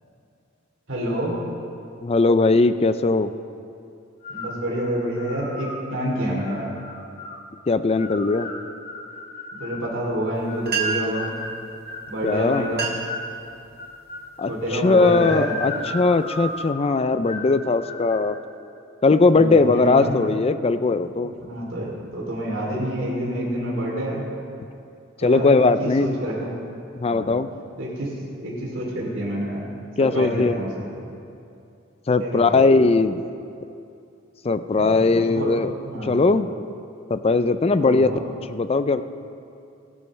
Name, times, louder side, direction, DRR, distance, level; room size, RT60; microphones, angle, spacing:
voice 1, 0.9-1.4 4.3-6.7 9.6-11.3 12.1-12.9 14.5-15.6 19.2-20.2 21.2-24.2 25.2-26.5 27.1-27.3 27.8-29.7 30.0-30.9 32.2-32.6 34.8-35.5 35.8-36.2 37.8-38.2, equal, 75° right, -4 dB, 3.1 m, -28 dB
voice 2, 2.0-3.3 7.7-8.5 12.2-12.7 14.4-18.4 19.0-21.3 25.2-26.2 27.0-27.5 30.0-30.6 32.1-33.2 34.4-35.8 36.0-36.5 37.1-38.1 38.5-39.0, left 3 dB, 30° left, 12 dB, 0.4 m, -19 dB
sound 1, 4.2-4.6 5.2-5.8 6.4-7.4 8.0-9.9 10.5-13.3 13.8-14.3 14.8-16.8 17.2-17.5 17.8-18.2, left 2 dB, 45° left, 1.8 m, -35 dB
sound 2, 10.4-10.5 10.6-11.2 12.1-12.3 12.6-13.2 13.7-14.1 14.7-14.9 15.5-16.7, right 6 dB, 55° right, 1.5 m, -30 dB
22.0 x 11.0 x 3.3 m, 2.6 s
head